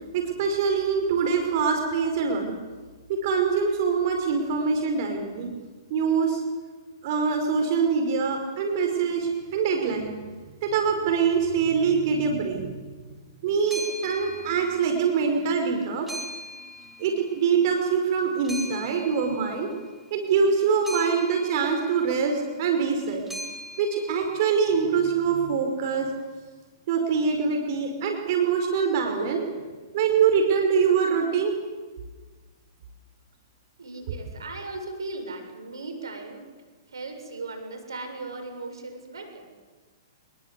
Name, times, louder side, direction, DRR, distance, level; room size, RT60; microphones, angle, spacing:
voice 1, 0.1-2.5 3.1-5.5 5.9-6.4 7.0-10.1 10.6-12.7 13.4-16.1 17.0-19.7 20.1-23.2 23.8-26.1 26.9-29.5 29.9-31.6, right 6 dB, 50° right, 4 dB, 5.2 m, -24 dB
sound 1, 13.5-15.2 15.5-17.8 18.2-24.7, equal, 5° right, 3.4 m, -41 dB
voice 2, 33.8-36.5 36.9-39.6, right 3 dB, 85° right, 5 dB, 7.3 m, -38 dB
26.5 x 22.0 x 8.4 m, 1.3 s
hypercardioid pair, 120°, 2 cm